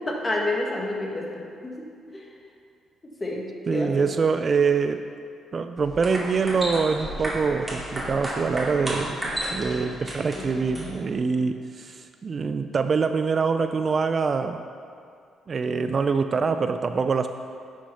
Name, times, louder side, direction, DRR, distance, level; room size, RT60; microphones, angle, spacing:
voice 1, 0.1-1.7 2.1-2.3 3.2-3.9 10.4-10.5, left 2 dB, 25° left, -2 dB, 1.9 m, -29 dB
voice 2, 3.7-5.0 5.5-9.2 9.5-14.6 15.5-17.3, right 5 dB, 40° right, 8 dB, 0.4 m, -24 dB
sound 1, 5.8-11.1, right 1 dB, 15° right, 2.3 m, -33 dB
9.8 x 6.3 x 5.6 m, 2.3 s
cardioid pair, 90°, 0 cm